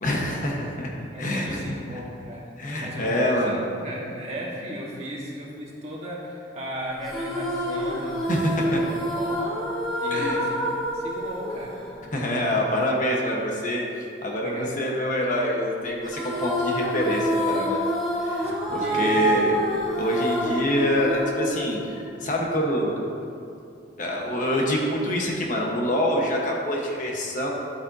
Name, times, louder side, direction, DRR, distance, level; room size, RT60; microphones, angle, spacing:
voice 1, 0.0-0.9 1.2-2.0 2.6-3.6 8.3-8.8 10.1-10.4 12.1-17.8 18.2-19.5 20.0-23.0 24.0-27.5, equal, 45° left, -1 dB, 1.2 m, -26 dB
voice 2, 1.1-2.5 2.8-3.1 3.4-8.2 8.5-9.4 10.0-11.8 14.4-14.8 18.4-18.5 18.8-19.5, equal, 35° right, -4 dB, 1.5 m, -36 dB
sound 1, 7.0-12.5 16.0-22.5, equal, ahead, 2.4 m, -27 dB
12.0 x 8.6 x 2.8 m, 2.5 s
head